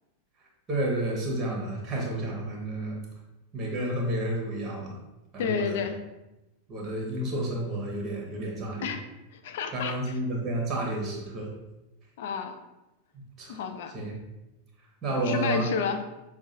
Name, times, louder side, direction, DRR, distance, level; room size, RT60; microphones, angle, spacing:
voice 1, 0.7-3.0 3.5-5.0 5.3-5.9 6.7-8.9 9.7-11.5 13.4-13.6 13.9-14.1 15.0-15.6, right 1 dB, 25° right, -2 dB, 1.2 m, -30 dB
voice 2, 5.4-6.0 8.8-9.0 9.4-10.2 12.2-12.6 13.5-13.9 15.1-16.0, left 6 dB, 55° left, 7 dB, 0.3 m, -30 dB
6.1 x 2.4 x 2.6 m, 0.99 s
figure-of-eight pair, 90°, 0 cm